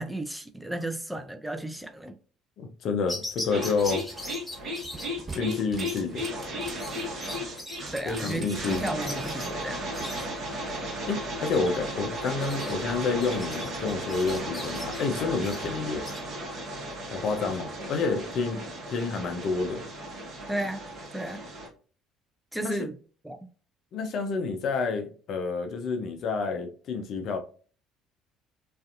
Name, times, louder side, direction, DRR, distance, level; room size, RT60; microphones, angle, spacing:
voice 1, 0.0-2.1 7.9-9.8 20.5-20.8 21.1-21.4 22.5-23.0 23.2-23.4, right 1 dB, 5° right, 0.4 m, -33 dB
voice 2, 2.6-4.1 5.3-6.3 8.1-8.8 11.1-16.0 17.1-18.6 18.9-19.8 22.6-22.8 23.9-27.4, left 4 dB, 60° left, 0.5 m, -29 dB
sound 1, 3.1-16.2, left 1 dB, 15° left, 1.1 m, -41 dB
sound 2, 3.5-21.7, equal, 50° right, 0.9 m, -35 dB
sound 3, 4.8-6.9 7.3-7.4 7.9-9.5 10.0-10.1, right 2 dB, 25° right, 1.3 m, -42 dB
2.5 x 2.4 x 2.4 m
hypercardioid pair, 60°, 0 cm